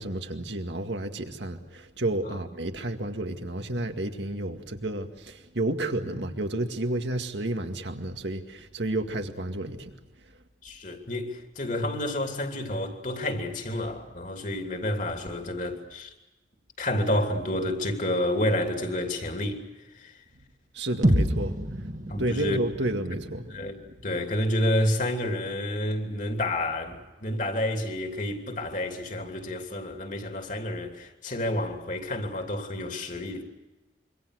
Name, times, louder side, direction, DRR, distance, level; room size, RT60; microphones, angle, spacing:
voice 1, 0.0-9.9 20.4-20.5 20.7-21.9 22.2-23.7, right 1 dB, 80° right, 2.1 m, -31 dB
voice 2, 10.6-16.1 16.8-19.6 19.9-20.1 22.1-22.6 23.5-33.4, left 1 dB, 45° left, 2.9 m, -29 dB
sound 1, 21.0-25.0, equal, 45° right, 2.0 m, -29 dB
26.0 x 24.5 x 6.5 m
head